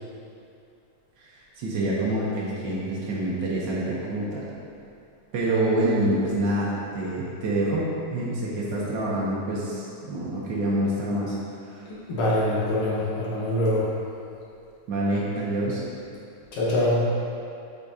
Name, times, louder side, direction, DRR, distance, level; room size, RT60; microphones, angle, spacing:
voice 1, 1.6-4.5 5.3-11.4 11.7-11.8 14.9-15.8, right 1 dB, 85° right, -6 dB, 1.0 m, -26 dB
voice 2, 11.8-13.9 16.5-17.1, left 1 dB, 60° left, -7 dB, 1.6 m, -24 dB
8.3 x 5.6 x 2.8 m, 2.5 s
omnidirectional pair, 3.3 m